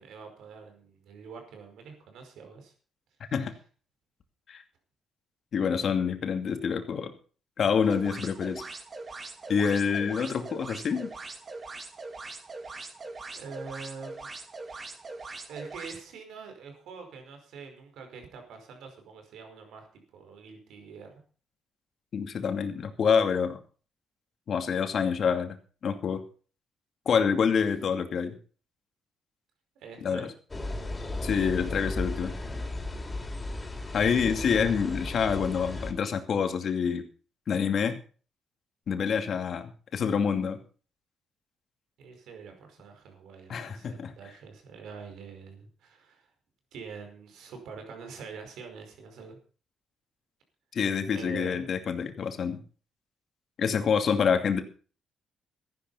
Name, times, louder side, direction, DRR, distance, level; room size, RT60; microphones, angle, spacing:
voice 1, 0.0-2.7 13.3-14.3 14.7-14.9 15.5-21.1 29.7-30.3 31.4-31.5 34.0-34.7 42.0-46.3 46.7-49.4 51.1-51.7, right 5 dB, 80° right, 5 dB, 5.0 m, -45 dB
voice 2, 5.5-7.1 7.6-8.6 9.5-11.1 22.1-23.6 24.5-25.6 25.8-26.2 27.1-28.4 30.0-30.3 31.2-32.3 33.9-37.0 37.5-38.0 38.9-40.6 43.5-44.1 50.7-52.6 53.6-54.6, left 6 dB, 60° left, 7 dB, 2.5 m, -27 dB
sound 1, 7.8-16.0, right 3 dB, 45° right, 3.3 m, -41 dB
sound 2, 30.5-35.9, left 2 dB, 25° left, 4.1 m, -35 dB
14.0 x 11.0 x 5.6 m, 0.40 s
cardioid pair, 70°, 0 cm